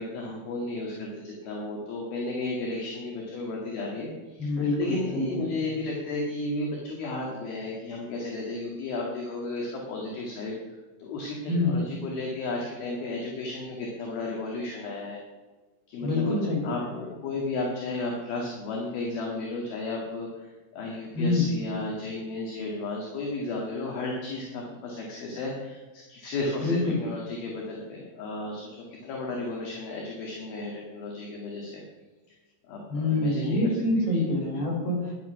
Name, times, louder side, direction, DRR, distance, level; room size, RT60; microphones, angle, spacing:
voice 1, 0.0-10.5 11.0-15.2 15.9-31.8 32.3-32.4 32.7-33.8 34.1-34.3, left 2 dB, 60° left, -1 dB, 3.5 m, -34 dB
voice 2, 4.4-5.5 11.5-11.7 16.0-16.9 21.1-21.5 26.6-27.0 32.9-35.1, left 2 dB, 35° left, -2 dB, 5.6 m, -26 dB
14.0 x 10.5 x 5.8 m, 1.3 s
omnidirectional pair, 5.3 m